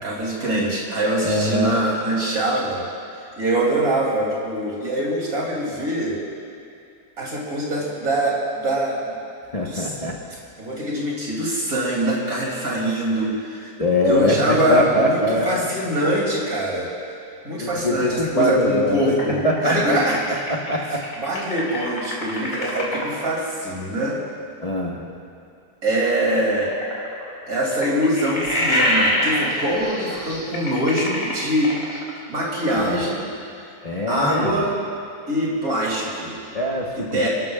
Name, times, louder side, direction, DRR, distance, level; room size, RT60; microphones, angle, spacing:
voice 1, 0.0-2.8 3.4-6.2 7.2-9.1 9.6-9.9 10.6-13.7 14.1-16.9 17.4-20.4 21.2-24.2 25.8-26.7 27.5-31.7 32.3-33.2 34.1-34.7 35.3-36.4 37.1-37.3, right 1 dB, 65° right, -4 dB, 3.4 m, -23 dB
voice 2, 1.2-1.8 9.5-10.2 13.8-15.7 17.6-19.1 19.4-20.0 20.5-21.0 24.6-25.0 32.8-33.0 33.8-34.6 36.5-37.3, left 1 dB, 25° left, -3 dB, 1.2 m, -22 dB
sound 1, 19.2-23.3 26.1-32.2, left 1 dB, 55° left, 2.9 m, -25 dB
30.0 x 12.5 x 2.4 m, 2.6 s
omnidirectional pair, 1.6 m